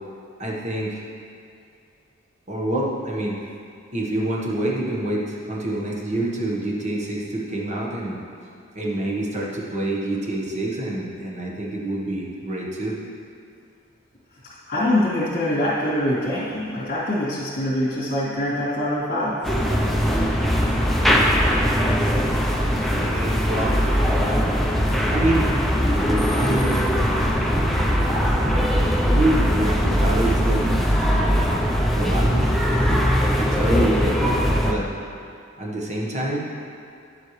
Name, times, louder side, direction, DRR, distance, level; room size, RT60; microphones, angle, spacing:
voice 1, 0.4-1.0 2.5-3.4 3.9-8.2 8.7-12.9 22.7-23.7 24.1-24.5 25.1-25.5 26.4-26.7 28.9-30.6 31.1-34.9 35.6-36.5, right 1 dB, 35° right, -3 dB, 1.2 m, -27 dB
voice 2, 14.7-19.5 21.9-22.1, left 1 dB, 45° left, -12 dB, 2.3 m, -24 dB
sound 1, 19.4-34.7, equal, ahead, 0.6 m, -20 dB
10.5 x 7.5 x 3.2 m, 2.4 s
head